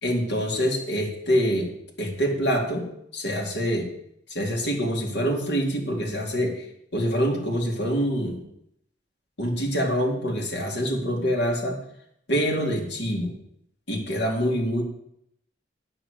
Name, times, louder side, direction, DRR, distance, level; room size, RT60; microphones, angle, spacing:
voice 1, 0.0-1.7 2.0-2.9 3.1-3.9 4.3-6.6 6.9-8.4 9.4-11.8 12.3-13.3 13.9-14.8, equal, 85° left, 0 dB, 2.5 m, -25 dB
8.9 x 6.3 x 8.3 m, 0.73 s
head